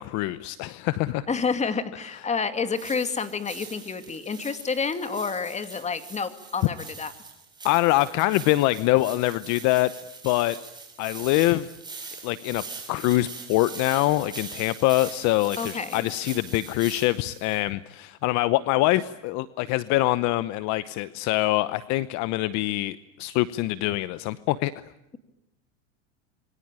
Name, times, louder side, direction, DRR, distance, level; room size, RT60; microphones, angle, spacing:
voice 1, 0.0-1.2 7.6-9.9 10.2-10.6 11.0-11.7 12.2-12.6 12.9-24.7, left 17 dB, 50° left, 16 dB, 1.0 m, -24 dB
voice 2, 1.3-7.1 15.6-16.0, left 5 dB, 20° left, 10 dB, 2.4 m, -29 dB
sound 1, 2.7-17.6, right 4 dB, 10° right, 6.5 m, -42 dB
26.5 x 23.5 x 8.9 m, 0.90 s
supercardioid pair, 125°, 35 cm